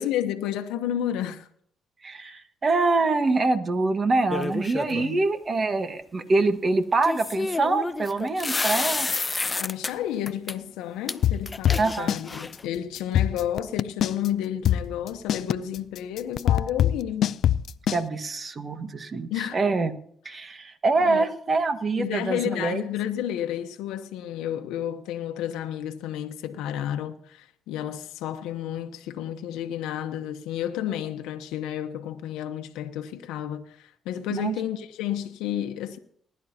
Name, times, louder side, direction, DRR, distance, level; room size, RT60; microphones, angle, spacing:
voice 1, 0.0-1.5 2.2-2.3 4.8-5.2 9.6-17.3 19.3-19.6 21.0-21.2 22.0-36.0, left 11 dB, 85° left, 0.9 m, -31 dB
voice 2, 2.0-9.1 11.8-12.1 17.9-19.9 20.2-22.8 34.3-34.6, right 3 dB, 45° right, 1.6 m, -25 dB
sound 1, 4.3-5.1 7.0-9.9 10.3-10.5 11.1-11.2 11.5-12.6, left 3 dB, 30° left, 0.6 m, -29 dB
sound 2, 11.2-12.2 12.5-12.6 13.0-14.3 14.6-18.0, left 10 dB, 70° left, 0.5 m, -22 dB
20.0 x 11.0 x 2.8 m
supercardioid pair, 60°, 0 cm